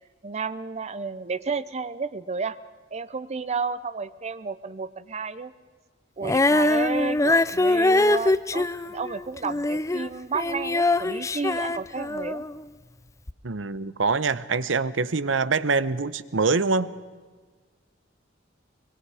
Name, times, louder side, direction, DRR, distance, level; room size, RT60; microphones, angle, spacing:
voice 1, 0.2-2.6 2.9-5.5 6.2-12.4, right 4 dB, 35° right, 14 dB, 0.6 m, -32 dB
Female singing, 6.2-12.6 13.3-13.4, left 2 dB, 15° left, 0.5 m, -23 dB
voice 2, 13.4-16.9, right 4 dB, 85° right, 15 dB, 0.9 m, -24 dB
24.0 x 22.5 x 4.9 m, 1.4 s
head